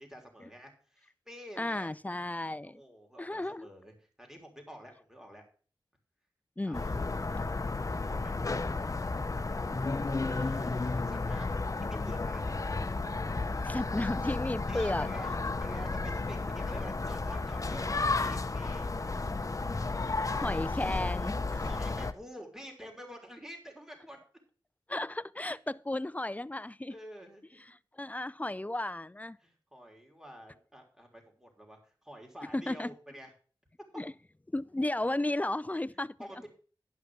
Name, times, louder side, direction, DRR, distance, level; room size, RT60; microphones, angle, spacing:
voice 1, 0.0-2.2 2.6-5.4 6.6-7.5 8.0-8.3 10.3-11.5 11.8-12.5 14.7-15.3 15.6-18.9 21.6-24.2 25.4-25.6 26.9-27.6 29.4-33.3 36.2-36.5, equal, 5° right, 3.4 m, -49 dB
voice 2, 1.6-2.8 3.2-3.7 6.6-6.8 13.6-15.1 20.0-21.7 24.9-27.0 27.6-29.4 32.5-32.9 34.0-34.1 34.5-36.2, left 1 dB, 20° left, 0.5 m, -34 dB
sound 1, 6.7-22.1, left 3 dB, 40° left, 0.8 m, -33 dB
11.5 x 5.8 x 6.1 m
cardioid pair, 50°, 9 cm